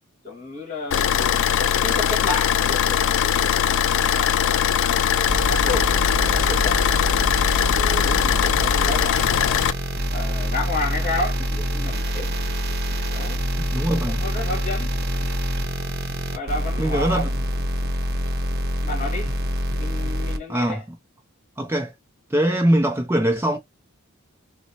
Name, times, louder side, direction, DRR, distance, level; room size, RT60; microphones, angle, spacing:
voice 1, 0.2-6.8 7.6-9.6 10.1-12.3 13.1-13.4 13.9-14.9 16.3-17.3 18.8-19.4 19.8-20.8, left 2 dB, 35° left, 1.4 m, -32 dB
Car / Idling, 0.9-9.7, left 9 dB, 60° left, 0.3 m, -20 dB
sound 1, 5.3-20.4, equal, 50° right, 0.7 m, -26 dB
voice 2, 13.6-14.2 16.8-17.3 20.5-20.8 21.6-21.9 22.3-23.6, right 1 dB, 10° right, 0.4 m, -22 dB
4.0 x 2.0 x 2.7 m
head